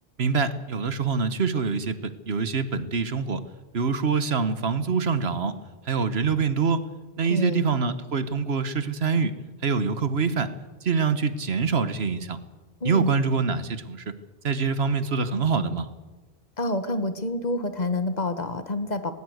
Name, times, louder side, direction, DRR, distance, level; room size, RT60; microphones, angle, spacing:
voice 1, 0.2-3.4 3.7-5.5 5.9-6.8 7.2-9.3 9.6-10.5 10.8-12.4 12.8-14.0 14.4-15.9, right 5 dB, 75° right, 12 dB, 1.5 m, -25 dB
voice 2, 7.3-7.6 12.8-13.1 16.6-19.1, left 2 dB, 40° left, 10 dB, 1.5 m, -28 dB
19.0 x 18.0 x 8.0 m, 1.2 s
omnidirectional pair, 1.1 m